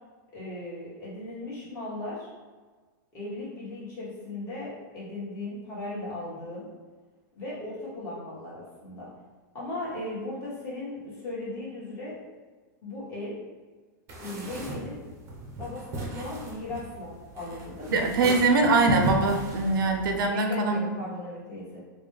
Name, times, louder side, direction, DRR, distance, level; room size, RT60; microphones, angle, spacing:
voice 1, 0.3-2.3 3.1-6.7 7.4-9.1 9.5-12.2 12.8-13.4 14.2-15.0 15.6-18.0 20.3-21.8, left 2 dB, 25° left, -8 dB, 1.4 m, -37 dB
sound 1, 14.1-20.2, right 1 dB, 25° right, 0.6 m, -36 dB
voice 2, 17.9-20.8, right 3 dB, 85° right, 4 dB, 0.5 m, -23 dB
4.0 x 2.3 x 3.2 m, 1.4 s
supercardioid pair, 155°, 11 cm